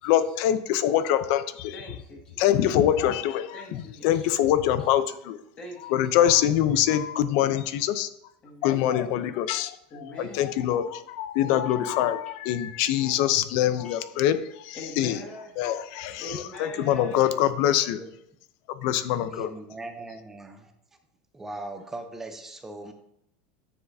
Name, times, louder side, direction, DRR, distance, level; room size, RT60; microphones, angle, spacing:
voice 1, 0.0-1.7 2.4-5.4 5.9-8.1 8.6-9.7 10.4-15.2 15.6-18.0 18.8-19.5, left 11 dB, 50° left, 12 dB, 0.6 m, -24 dB
voice 2, 1.7-2.5 3.5-4.3 4.8-4.9 5.6-6.0 8.4-8.9 9.9-10.4 10.9-11.0 11.4-12.0 12.9-13.4 13.8-14.2 14.7-15.5 16.2-17.4, left 1 dB, 25° left, 0 dB, 1.9 m, -43 dB
voice 3, 19.3-20.7 21.3-22.9, right 2 dB, 10° right, 5 dB, 0.7 m, -39 dB
9.8 x 7.1 x 2.7 m, 0.75 s
supercardioid pair, 170°, 4 cm